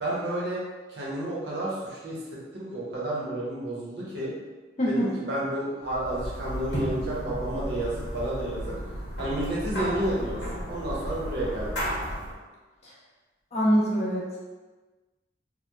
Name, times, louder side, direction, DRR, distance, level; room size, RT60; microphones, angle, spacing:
voice 1, 0.0-4.3 4.8-8.8 9.2-10.4 10.7-12.1, right 1 dB, 65° right, -6 dB, 0.7 m, -31 dB
voice 2, 4.8-5.1 13.5-14.4, equal, 35° left, -6 dB, 0.6 m, -24 dB
sound 1, 5.9-12.4, equal, 70° left, 0.9 m, -33 dB
2.8 x 2.1 x 2.2 m, 1.3 s
head